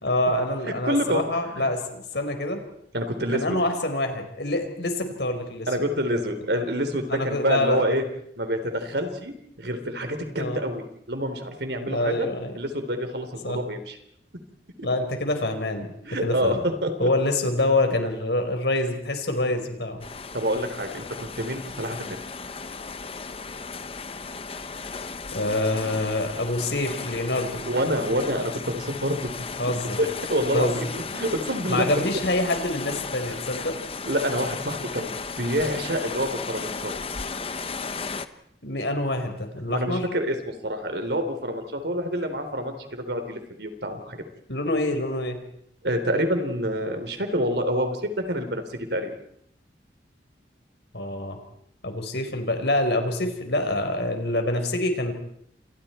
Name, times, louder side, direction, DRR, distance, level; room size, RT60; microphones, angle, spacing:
voice 1, 0.0-2.6 3.3-5.7 7.1-7.8 10.4-10.6 11.8-12.6 13.4-13.6 14.8-15.9 16.2-16.6 17.0-20.0 25.3-27.7 29.6-30.0 30.5-30.8 31.7-33.8 38.6-40.0 44.5-45.4 50.9-51.4 51.8-55.1, left 1 dB, 70° left, 5 dB, 4.4 m, -26 dB
voice 2, 0.8-1.2 2.9-3.6 5.7-8.0 8.4-10.8 11.1-12.3 12.6-14.0 14.8-14.9 16.0-17.1 20.3-22.2 27.7-29.3 30.0-31.9 34.0-36.9 39.7-44.2 45.8-49.1, equal, 70° right, 7 dB, 3.7 m, -27 dB
sound 1, 20.0-38.3, left 4 dB, 30° left, 1.1 m, -35 dB
30.0 x 27.0 x 4.5 m, 0.71 s
head